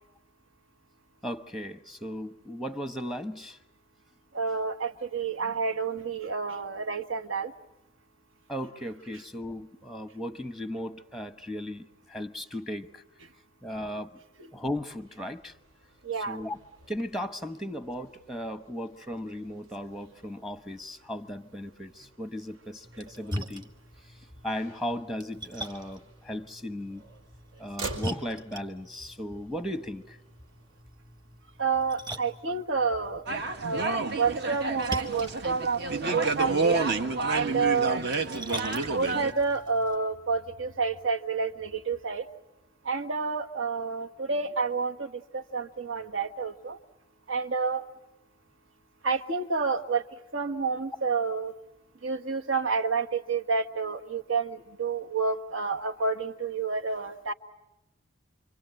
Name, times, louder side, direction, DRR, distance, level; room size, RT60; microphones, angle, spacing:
voice 1, 1.2-3.6 8.5-13.0 13.6-14.2 14.5-15.5 16.1-16.6 16.9-23.7 24.1-27.0 27.6-30.2, equal, ahead, 10 dB, 0.9 m, -36 dB
voice 2, 4.3-7.5 16.0-16.4 31.6-33.2 33.6-36.8 37.3-38.0 38.3-42.2 42.8-46.8 47.3-47.8 49.0-50.0 50.3-51.5 52.0-57.3, right 4 dB, 65° right, 6 dB, 1.5 m, -29 dB
Motor vehicle (road), 15.0-30.8, right 3 dB, 85° right, 4.4 m, -49 dB
Splash splatter, 22.8-40.0, equal, 20° right, 1.6 m, -43 dB
sound 1, 33.3-39.3, right 3 dB, 50° right, 1.4 m, -29 dB
28.5 x 25.0 x 7.7 m, 0.95 s
head